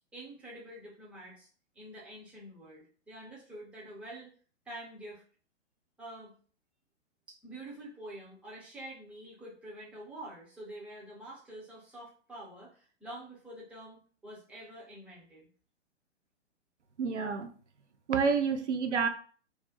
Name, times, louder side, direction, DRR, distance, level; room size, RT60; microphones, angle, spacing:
voice 1, 0.1-1.5 1.7-4.3 4.7-5.2 6.0-6.3 7.3-15.5, right 1 dB, 5° right, 0.5 m, -47 dB
voice 2, 17.0-17.5 18.1-19.1, right 5 dB, 80° right, 0.6 m, -28 dB
2.5 x 2.0 x 3.9 m
figure-of-eight pair, 120°, 35 cm